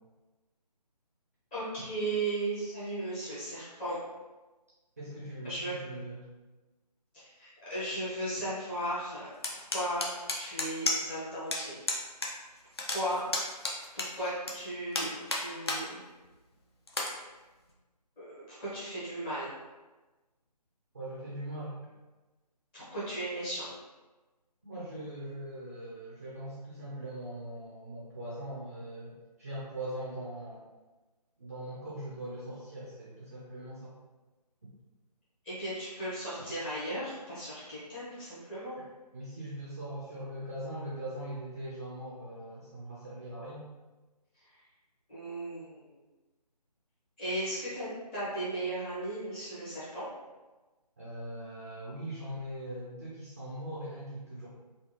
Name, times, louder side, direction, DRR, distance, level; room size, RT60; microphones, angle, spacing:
voice 1, 1.5-4.0 5.4-5.7 7.1-9.3 9.7-10.0 10.4-11.8 12.9-13.2 13.9-16.0 18.2-19.5 22.7-23.7 35.4-38.8 45.1-45.8 47.2-50.0, right 1 dB, 15° left, -11 dB, 0.8 m, -36 dB
voice 2, 5.0-6.2 20.9-21.7 24.6-29.1 29.4-30.6 31.4-33.9 39.1-43.6 51.0-54.5, right 1 dB, 25° right, -8 dB, 0.4 m, -41 dB
sound 1, 9.4-11.2 11.5-11.6 11.9-12.3 12.6-14.5 14.9-15.8 16.2-16.3 16.9-17.1, left 2 dB, 40° left, 0.5 m, -32 dB
3.3 x 2.3 x 2.9 m, 1.2 s
figure-of-eight pair, 150°, 21 cm